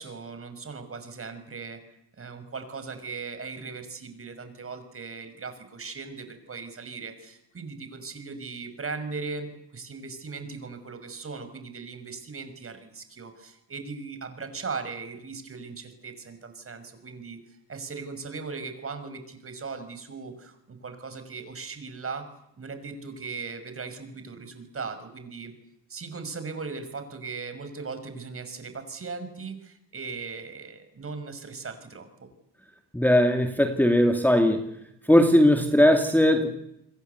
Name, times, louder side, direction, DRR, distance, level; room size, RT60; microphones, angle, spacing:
voice 1, 0.0-1.8 2.2-22.3 22.6-25.5 25.9-32.1, right 4 dB, 35° right, 9 dB, 6.1 m, -38 dB
voice 2, 32.9-34.7 35.1-36.5, left 1 dB, 5° left, 5 dB, 2.6 m, -19 dB
28.5 x 22.0 x 8.3 m, 0.82 s
supercardioid pair, 80°, 40 cm